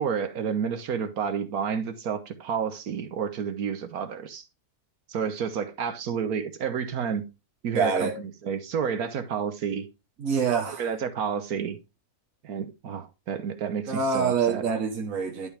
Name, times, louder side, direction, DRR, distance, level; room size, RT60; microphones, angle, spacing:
voice 1, 0.0-4.5 5.1-7.2 7.6-9.9 10.8-11.8 12.4-14.6, right 7 dB, 80° right, 1.5 m, -30 dB
voice 2, 7.7-8.1 10.2-10.9 13.9-15.5, right 5 dB, 65° right, 1.6 m, -26 dB
11.0 x 5.3 x 3.3 m
omnidirectional pair, 1.6 m